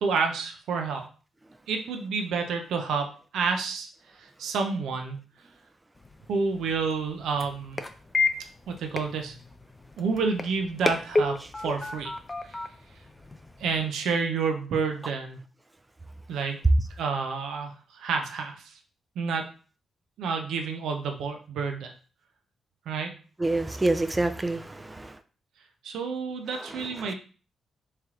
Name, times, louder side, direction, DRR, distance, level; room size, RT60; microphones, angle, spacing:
voice 1, 0.0-1.0 1.7-3.9 4.2-5.2 6.3-7.8 8.7-9.4 10.0-12.1 12.5-12.6 13.6-15.4 16.3-16.6 17.0-18.7 19.2-19.5 20.2-21.9 22.9-23.2 25.8-27.1, right 5 dB, 75° right, 4 dB, 0.6 m, -29 dB
sound 1, 6.0-13.8, left 3 dB, 30° left, 0.5 m, -32 dB
voice 2, 23.4-25.2 26.8-27.1, right 2 dB, 20° right, 10 dB, 0.5 m, -27 dB
3.2 x 2.8 x 3.6 m, 0.38 s
hypercardioid pair, 40°, 0 cm